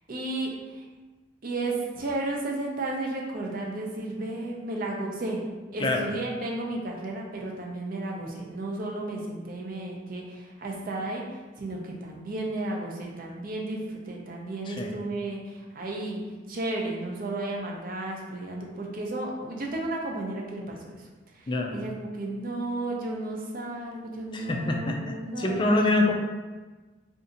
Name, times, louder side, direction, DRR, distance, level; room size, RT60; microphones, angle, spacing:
voice 1, 0.1-0.8 1.4-5.4 5.7-11.2 11.6-16.2 16.5-20.8 21.3-25.8, right 2 dB, 45° right, -1 dB, 0.5 m, -33 dB
voice 2, 21.5-21.8 24.3-26.1, left 2 dB, 25° left, 1 dB, 0.3 m, -25 dB
2.6 x 2.5 x 3.8 m, 1.3 s
head